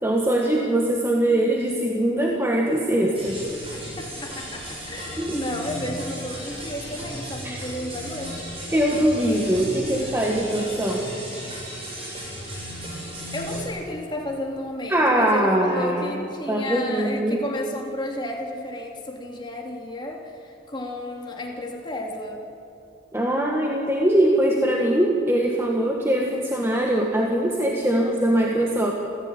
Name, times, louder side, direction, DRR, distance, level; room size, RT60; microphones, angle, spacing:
voice 1, 0.0-3.4 5.2-5.4 7.4-7.6 8.7-11.0 14.9-17.4 23.1-28.9, right 1 dB, 10° right, -1 dB, 1.6 m, -22 dB
sound 1, 3.1-13.6, equal, 30° right, 7.1 m, -35 dB
voice 2, 4.0-8.4 13.3-22.4, left 1 dB, 20° left, 0 dB, 3.2 m, -32 dB
28.5 x 15.5 x 8.9 m, 2.7 s
head